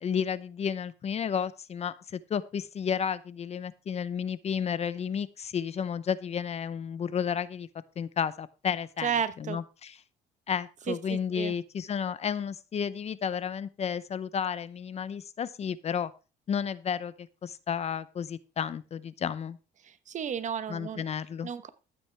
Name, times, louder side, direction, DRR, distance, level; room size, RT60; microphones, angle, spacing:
voice 1, 0.0-7.7 8.0-9.1 9.4-10.0 10.5-16.1 16.5-19.6 20.7-21.5, left 7 dB, 40° left, 16 dB, 0.7 m, -32 dB
voice 2, 9.0-9.6 10.9-11.5 19.8-21.1 21.4-21.7, right 7 dB, 45° right, 13 dB, 1.1 m, -33 dB
13.0 x 8.8 x 3.4 m, 0.31 s
cardioid pair, 110°, 17 cm